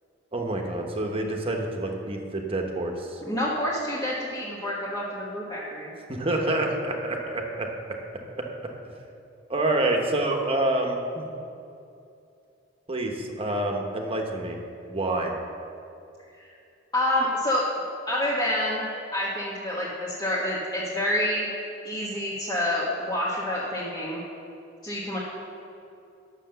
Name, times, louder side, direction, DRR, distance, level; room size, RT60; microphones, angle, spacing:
voice 1, 0.3-3.2 6.1-7.7 8.4-8.5 9.5-11.3 12.9-14.6 14.9-15.3, right 2 dB, 30° right, 2 dB, 1.1 m, -27 dB
voice 2, 3.2-5.9 16.4-16.5 16.9-17.7 18.1-18.9 19.1-21.5 21.8-24.2 24.8-25.2, left 1 dB, 20° left, -8 dB, 1.4 m, -28 dB
9.9 x 6.7 x 6.8 m, 2.6 s
head